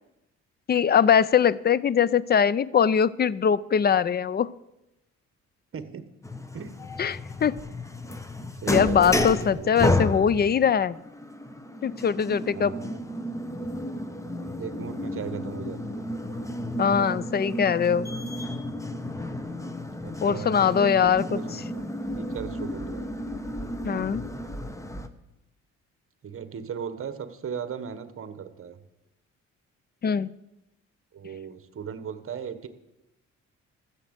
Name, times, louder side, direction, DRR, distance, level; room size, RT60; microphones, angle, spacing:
voice 1, 0.7-4.5 7.0-7.5 8.7-11.0 11.8-12.7 16.8-18.1 20.2-21.4 23.8-24.2 30.0-30.3, left 7 dB, 35° left, 21 dB, 0.5 m, -22 dB
voice 2, 5.7-6.1 6.5-6.7 7.4-7.5 8.4-9.7 12.5-13.1 14.6-16.1 20.0-23.3 26.2-28.8 31.1-32.7, right 7 dB, 45° right, 11 dB, 1.3 m, -37 dB
sound 1, 6.2-25.1, left 1 dB, 10° left, 1.0 m, -32 dB
13.5 x 7.3 x 8.1 m, 0.92 s
cardioid pair, 90°, 30 cm